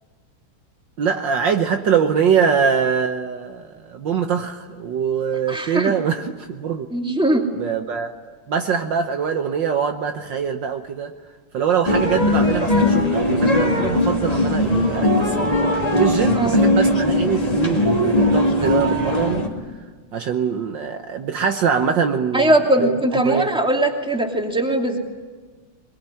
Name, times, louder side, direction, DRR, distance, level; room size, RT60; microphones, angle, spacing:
voice 1, 1.0-6.9 7.6-8.1 8.5-11.1 11.5-15.5 16.0-19.5 20.1-22.5 22.8-23.5, right 7 dB, 65° right, 6 dB, 1.6 m, -23 dB
voice 2, 5.5-5.9 6.9-7.4 16.3-16.6 22.3-25.0, right 1 dB, ahead, 1 dB, 2.5 m, -20 dB
sound 1, 11.9-19.5, left 1 dB, 20° left, 2.3 m, -19 dB
22.5 x 22.0 x 9.9 m, 1.4 s
omnidirectional pair, 2.3 m